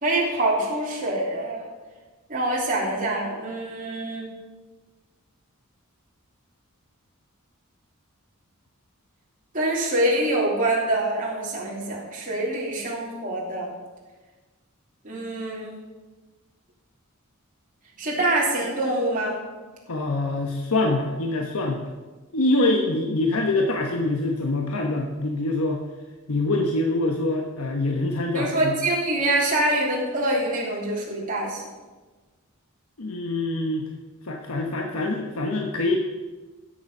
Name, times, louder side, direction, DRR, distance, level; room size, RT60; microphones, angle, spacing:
voice 1, 0.0-1.6 2.3-4.3 9.5-13.7 15.0-15.7 18.0-19.4 28.3-31.6, right 1 dB, 40° right, -4 dB, 3.0 m, -25 dB
voice 2, 19.9-21.8 22.3-25.8 26.3-28.7 33.0-33.9 34.2-36.0, left 2 dB, 85° left, 2 dB, 1.1 m, -25 dB
16.0 x 7.1 x 5.5 m, 1.3 s
head